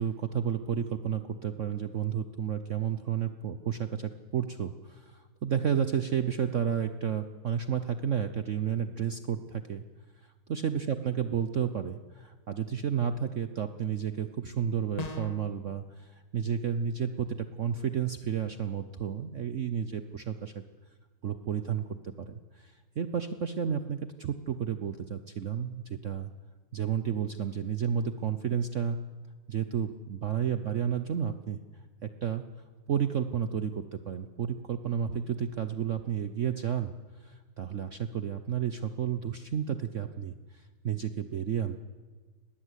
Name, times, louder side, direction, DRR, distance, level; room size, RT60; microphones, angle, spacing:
voice 1, 0.0-9.8 10.2-20.5 21.2-26.3 26.7-29.0 29.5-31.6 32.0-32.4 32.9-36.9 37.2-41.8, right 8 dB, 65° right, 10 dB, 0.7 m, -32 dB
sound 1, 15.0-15.5, left 2 dB, 30° left, 0.7 m, -37 dB
20.5 x 19.0 x 8.2 m, 1.4 s
omnidirectional pair, 2.3 m